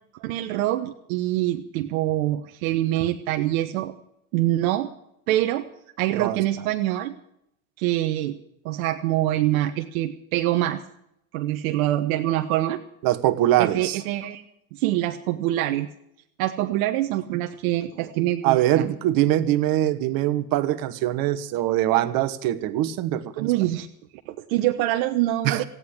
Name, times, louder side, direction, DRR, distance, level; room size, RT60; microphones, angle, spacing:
voice 1, 0.2-3.9 4.3-4.9 5.3-5.6 6.0-7.1 7.8-8.4 8.6-10.8 11.3-12.8 13.6-14.4 14.7-15.9 16.4-18.9 23.4-23.9 24.3-25.6, right 14 dB, 65° right, 6 dB, 1.1 m, -25 dB
voice 2, 13.0-14.0 18.4-23.7 25.4-25.6, right 13 dB, 50° right, 10 dB, 1.4 m, -23 dB
15.5 x 9.8 x 8.6 m, 0.76 s
hypercardioid pair, 100°, 44 cm